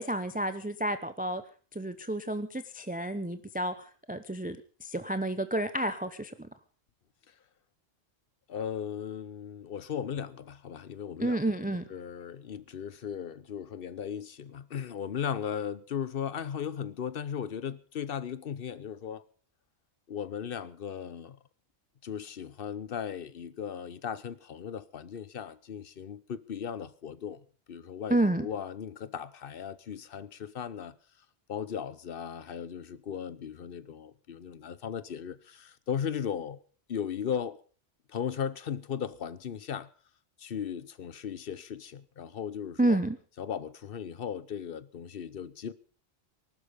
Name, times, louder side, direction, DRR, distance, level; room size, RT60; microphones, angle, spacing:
voice 1, 0.0-1.4 1.7-6.5 11.2-11.8 28.1-28.5 42.8-43.2, right 1 dB, 10° right, 0.6 m, -30 dB
voice 2, 8.5-11.4 11.9-19.2 20.1-21.4 22.0-27.4 27.7-30.9 31.5-36.6 36.9-37.6 38.1-39.9 40.4-43.0 43.4-45.7, left 8 dB, 55° left, 1.0 m, -37 dB
19.5 x 12.5 x 5.2 m
omnidirectional pair, 1.2 m